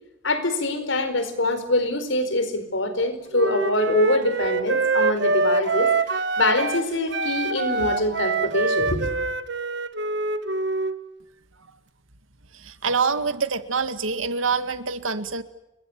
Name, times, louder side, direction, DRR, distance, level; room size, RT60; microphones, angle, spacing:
voice 1, 0.2-5.9 6.4-9.1, left 1 dB, 70° left, 11 dB, 4.7 m, -24 dB
Wind instrument woodwind instrument, 3.3-6.9 7.1-11.0, right 3 dB, 60° right, 1.8 m, -25 dB
voice 2, 12.5-15.4, right 5 dB, 85° right, 11 dB, 2.0 m, -26 dB
29.5 x 22.5 x 7.3 m, 0.89 s
head